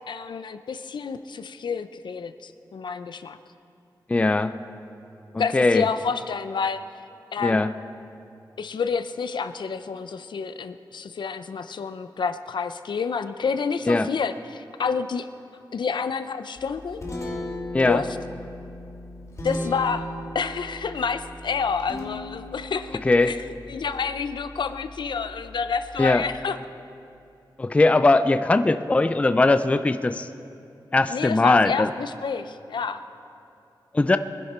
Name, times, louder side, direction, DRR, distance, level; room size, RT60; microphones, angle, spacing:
voice 1, 0.1-3.4 5.4-6.8 7.3-7.6 8.6-15.3 15.7-17.0 17.8-18.1 19.4-26.6 31.1-33.0, left 5 dB, 70° left, 11 dB, 0.6 m, -29 dB
voice 2, 4.1-4.6 5.3-5.8 7.4-7.7 13.9-14.1 17.7-18.0 23.0-23.3 26.0-26.2 27.6-30.3 30.9-31.9 33.9-34.2, left 2 dB, 15° left, 11 dB, 0.4 m, -20 dB
Guitar, 16.6-26.3, left 1 dB, 40° left, 2.7 m, -37 dB
22.5 x 10.5 x 4.4 m, 2.6 s
wide cardioid pair, 160°, 8 cm